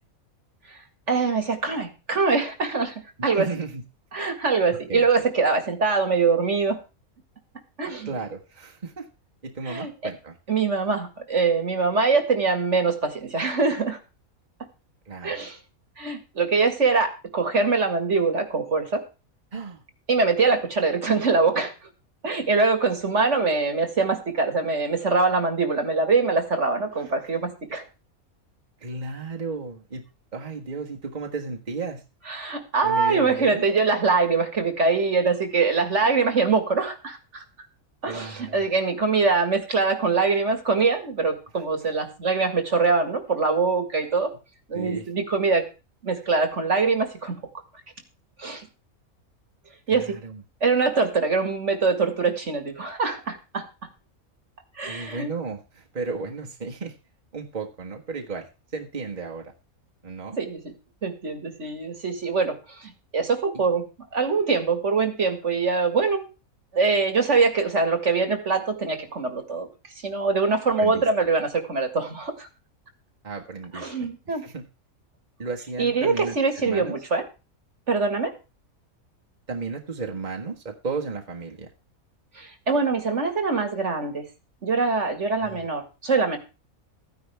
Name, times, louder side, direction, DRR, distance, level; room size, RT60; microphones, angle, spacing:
voice 1, 0.7-3.5 4.1-6.8 7.8-8.1 9.7-9.9 10.5-14.0 15.2-15.6 16.0-19.0 20.1-21.9 22.2-27.8 32.3-37.4 38.0-44.3 44.7-45.6 46.0-47.4 48.4-48.7 49.9-50.2 50.6-53.6 54.8-55.3 60.4-60.6 61.0-63.8 64.1-66.2 66.7-69.7 70.0-72.5 73.7-74.4 75.8-77.2 77.9-78.3 82.3-84.3 84.6-86.4, right 4 dB, 55° right, 7 dB, 2.2 m, -23 dB
voice 2, 3.2-3.8 4.7-5.1 8.0-9.1 9.4-10.3 15.0-15.4 19.5-19.8 28.8-30.0 30.3-32.0 32.8-33.6 38.1-38.6 44.7-45.1 49.9-50.4 54.9-56.9 57.3-58.5 58.7-59.5 60.0-60.4 63.5-63.6 70.8-71.0 73.2-73.9 74.3-74.6 75.4-76.3 76.6-76.9 79.5-81.7 85.4-85.7, right 4 dB, 30° right, 1 dB, 1.7 m, -34 dB
14.5 x 10.0 x 3.5 m, 0.30 s
omnidirectional pair, 1.5 m